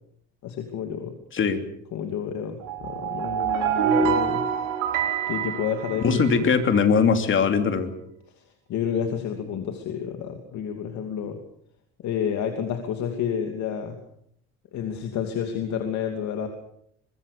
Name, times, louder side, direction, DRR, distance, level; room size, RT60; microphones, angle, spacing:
voice 1, 0.4-1.1 1.9-4.4 5.3-6.0 6.3-6.5 8.7-11.4 12.0-14.0 14.7-16.5, left 8 dB, 65° left, 5 dB, 2.8 m, -30 dB
sound 1, 2.6-6.6, right 7 dB, 80° right, 5.4 m, -26 dB
voice 2, 5.9-7.9, left 5 dB, 40° left, 7 dB, 3.0 m, -21 dB
23.5 x 22.0 x 6.9 m, 0.70 s
cardioid pair, 140°, 30 cm